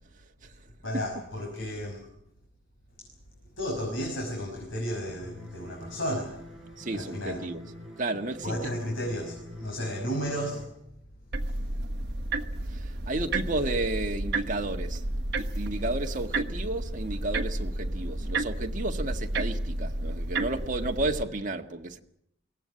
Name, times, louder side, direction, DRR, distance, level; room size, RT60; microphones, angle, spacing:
voice 1, 0.8-2.1 3.6-6.4 6.9-7.4 8.4-10.6 11.5-11.6, equal, 85° left, 5.9 m, -33 dB
sound 1, 5.1-10.7, equal, ahead, 5.5 m, -45 dB
voice 2, 6.8-7.6 8.0-8.6 12.7-15.0 15.4-22.0, right 2 dB, 40° right, 1.8 m, -32 dB
sound 2, 11.3-21.2, right 2 dB, 60° right, 1.4 m, -31 dB
22.5 x 17.5 x 9.8 m
head